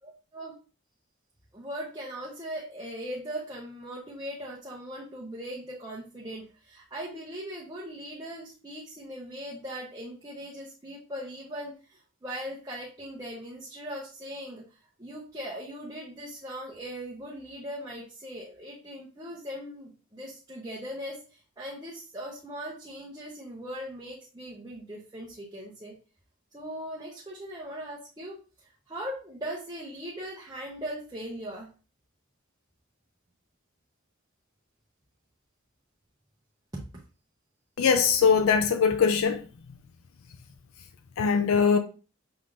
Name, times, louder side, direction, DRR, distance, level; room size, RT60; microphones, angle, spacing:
voice 1, 0.0-0.6 1.5-25.9 26.5-31.7 36.7-36.8, equal, 15° right, 0.7 m, -39 dB
voice 2, 37.8-39.5 41.2-41.8, left 6 dB, 80° left, 0.4 m, -21 dB
5.8 x 3.5 x 2.5 m
head